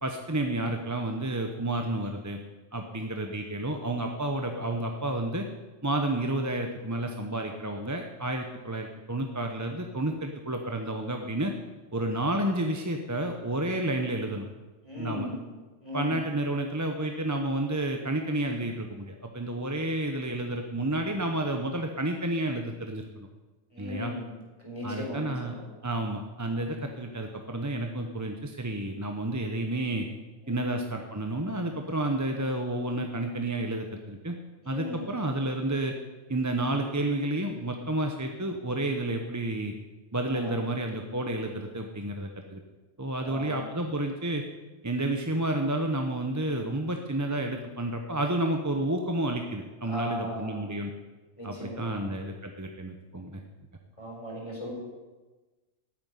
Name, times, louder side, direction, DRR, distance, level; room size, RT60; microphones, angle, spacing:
voice 1, 0.0-2.4 2.7-5.4 5.8-11.5 11.9-14.5 15.0-15.3 15.9-23.3 23.8-24.1 24.8-25.5 25.8-30.1 30.5-34.4 34.7-35.9 36.3-39.7 40.1-42.6 43.0-44.4 44.8-50.9 51.4-53.4, right 1 dB, 15° right, 3 dB, 0.8 m, -30 dB
voice 2, 14.8-15.4 15.8-16.2 23.7-24.3 24.6-25.6 30.5-30.8 34.6-35.1 40.3-40.6 43.2-43.6 49.8-50.6 51.4-52.0 54.0-54.7, left 1 dB, 25° left, -3 dB, 4.5 m, -37 dB
9.7 x 8.7 x 9.5 m, 1.2 s
omnidirectional pair, 1.3 m